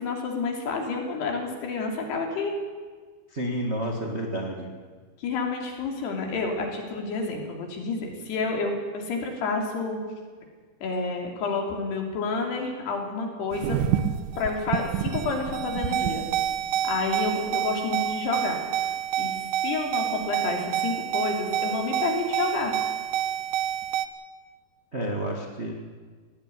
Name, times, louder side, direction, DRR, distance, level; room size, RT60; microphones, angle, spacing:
voice 1, 0.0-2.5 5.2-10.0 10.8-13.8 14.4-16.2 16.8-18.6 19.2-22.7, left 4 dB, 75° left, 2 dB, 5.1 m, -29 dB
voice 2, 3.3-4.7 24.9-25.7, right 1 dB, 45° right, 1 dB, 0.8 m, -30 dB
sound 1, 13.5-24.1, right 11 dB, 70° right, 2.1 m, -28 dB
18.5 x 16.5 x 9.8 m, 1.5 s
omnidirectional pair, 4.7 m